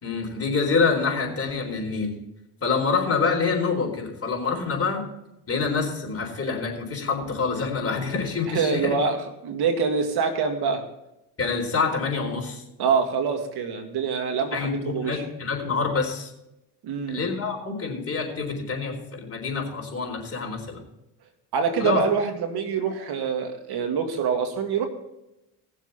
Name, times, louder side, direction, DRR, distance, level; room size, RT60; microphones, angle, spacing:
voice 1, 0.0-2.1 2.6-5.0 5.5-9.0 11.4-12.6 14.5-16.3 17.1-20.8 21.8-22.0, left 4 dB, 35° left, 1 dB, 4.2 m, -26 dB
voice 2, 8.5-10.8 12.8-15.2 16.8-17.3 21.5-24.9, right 6 dB, 65° right, 5 dB, 2.1 m, -25 dB
19.0 x 7.4 x 4.3 m, 0.88 s
cardioid pair, 95°, 41 cm